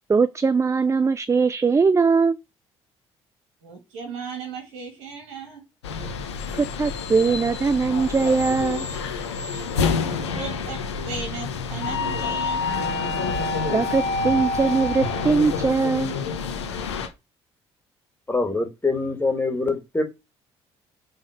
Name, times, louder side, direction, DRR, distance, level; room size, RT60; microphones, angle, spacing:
voice 1, 0.1-2.4 6.5-8.9 13.7-16.1, right 4 dB, 20° right, 0.4 m, -21 dB
voice 2, 3.6-5.6 10.3-12.6, right 5 dB, 70° right, 2.3 m, -36 dB
sound 1, 5.8-17.1, left 4 dB, 90° left, 0.9 m, -27 dB
voice 3, 18.3-20.0, left 3 dB, 15° left, 2.2 m, -24 dB
5.8 x 3.8 x 5.1 m
hypercardioid pair, 50°, 14 cm